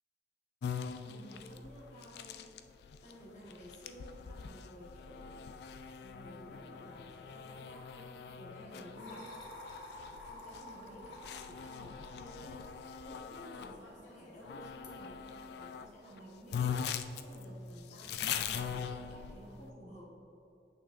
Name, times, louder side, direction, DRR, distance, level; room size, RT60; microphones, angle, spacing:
sound 1, 0.6-13.8 14.4-15.9 16.2-16.3 16.5-19.6, left 7 dB, 65° left, 0.3 m, -42 dB
voice 1, 1.0-2.6 3.0-5.6 6.0-9.3 9.8-9.9 10.3-12.7 13.0-20.1, equal, 40° left, -3 dB, 1.3 m, -53 dB
sound 2, 9.0-15.0, left 1 dB, 85° left, 1.0 m, -51 dB
8.2 x 6.2 x 2.5 m, 2.8 s
head